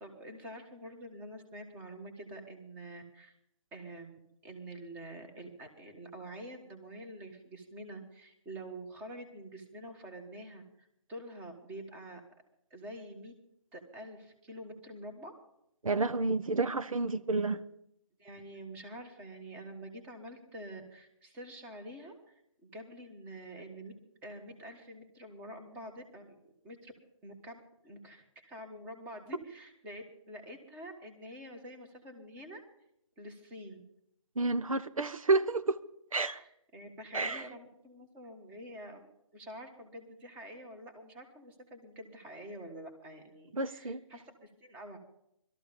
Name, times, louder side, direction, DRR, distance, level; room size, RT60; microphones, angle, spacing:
voice 1, 0.0-3.3 3.7-12.2 12.7-13.3 13.7-15.3 18.2-23.9 24.2-26.4 26.6-26.9 27.2-32.6 33.2-33.8 36.3-39.1 39.3-45.0, right 1 dB, 10° right, 1.5 m, -47 dB
voice 2, 15.8-17.6 34.4-35.8 36.1-36.4 37.1-37.5 43.5-44.0, right 3 dB, 85° right, 1.1 m, -30 dB
20.0 x 13.5 x 5.3 m
hypercardioid pair, 165°, 17 cm